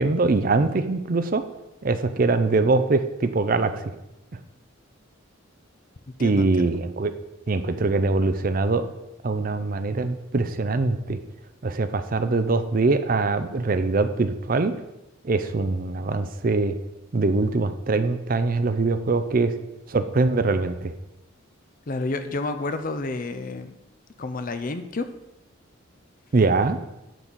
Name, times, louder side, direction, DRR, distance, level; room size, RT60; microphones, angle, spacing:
voice 1, 0.0-1.4 1.8-3.8 6.2-7.1 7.5-8.9 9.2-11.2 11.6-14.7 15.2-16.7 17.1-19.5 19.9-20.9 26.3-26.8, right 3 dB, 40° right, 10 dB, 0.5 m, -23 dB
voice 2, 6.2-6.7 21.9-23.7 24.2-25.1, left 3 dB, 40° left, 8 dB, 0.5 m, -30 dB
9.0 x 4.1 x 6.2 m, 0.93 s
head